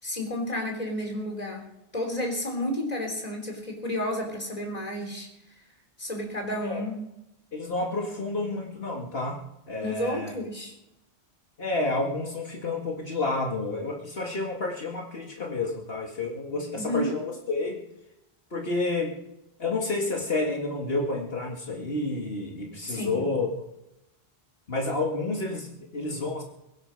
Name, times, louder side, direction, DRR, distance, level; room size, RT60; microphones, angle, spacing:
voice 1, 0.0-1.7 1.9-5.3 6.0-7.0 9.8-10.7 16.7-17.2 22.9-23.3, left 1 dB, 40° left, 1 dB, 3.6 m, -31 dB
voice 2, 7.5-10.3 11.6-17.8 18.5-19.2 19.6-23.6 24.7-26.4, left 2 dB, 70° left, -1 dB, 2.2 m, -30 dB
23.0 x 9.1 x 5.3 m, 0.89 s
omnidirectional pair, 1.0 m